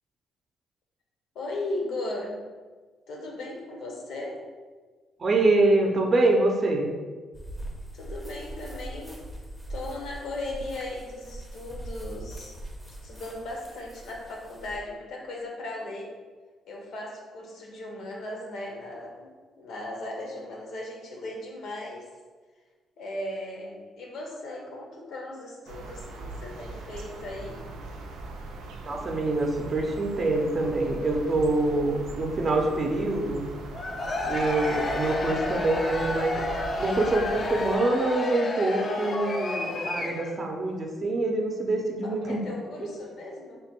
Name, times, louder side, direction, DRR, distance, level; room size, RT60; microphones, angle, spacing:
voice 1, 1.3-2.4 3.1-4.4 7.9-9.2 9.7-12.6 12.9-16.1 16.7-22.1 23.0-27.6 42.0-43.6, left 2 dB, 75° left, -1 dB, 0.8 m, -37 dB
voice 2, 5.2-6.9 28.8-33.4 34.3-36.4 36.8-42.4, right 2 dB, 35° right, 1 dB, 0.6 m, -25 dB
sound 1, 7.3-14.8, right 1 dB, ahead, 0.6 m, -41 dB
sound 2, 25.7-37.8, right 2 dB, 85° right, 0.4 m, -40 dB
Cheering / Crowd, 33.7-40.4, left 2 dB, 45° left, 0.4 m, -31 dB
3.4 x 2.2 x 4.3 m, 1.4 s
cardioid pair, 90°, 0 cm